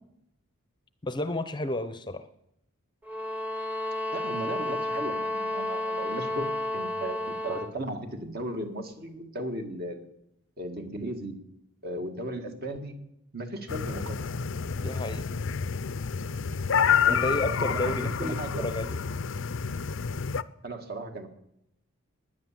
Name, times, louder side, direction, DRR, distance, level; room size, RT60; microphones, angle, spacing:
voice 1, 1.0-2.3 14.8-15.3 17.0-19.0, left 1 dB, 20° left, 11 dB, 0.7 m, -32 dB
sound 1, 3.0-7.8, left 1 dB, 5° right, 1.0 m, -31 dB
voice 2, 4.1-10.1 10.6-11.4 11.8-13.0 13.3-14.2 16.8-18.7 20.6-21.3, right 1 dB, 45° right, 5 dB, 2.0 m, -36 dB
sound 2, 13.7-20.4, left 6 dB, 60° left, 0.5 m, -28 dB
18.5 x 10.5 x 7.5 m, 0.83 s
head